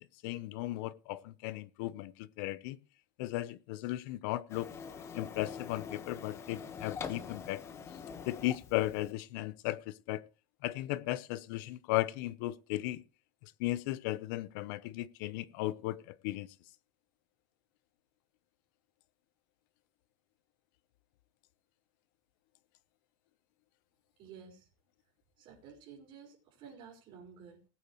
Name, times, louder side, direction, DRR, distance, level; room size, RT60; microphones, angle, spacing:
voice 1, 0.2-2.8 3.2-4.7 5.1-7.6 8.2-10.2 10.6-13.0 13.4-16.5, left 16 dB, 65° left, 0.9 m, -36 dB
Printer, 4.5-9.1, left 6 dB, 25° left, 1.4 m, -44 dB
voice 2, 24.2-24.7 25.4-27.7, right 6 dB, 45° right, 5.0 m, -52 dB
20.0 x 8.6 x 3.2 m
supercardioid pair, 160°, 11 cm